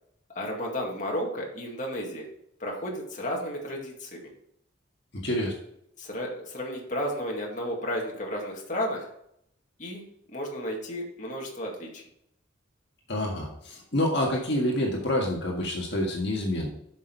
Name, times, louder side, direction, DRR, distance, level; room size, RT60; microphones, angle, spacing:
voice 1, 0.4-2.3 2.6-4.2 6.0-9.1 9.8-10.0 10.3-12.0, equal, 40° left, -1 dB, 2.1 m, -33 dB
voice 2, 5.2-5.6 13.1-16.7, left 1 dB, 60° left, -2 dB, 1.8 m, -27 dB
8.3 x 6.4 x 4.6 m, 0.73 s
head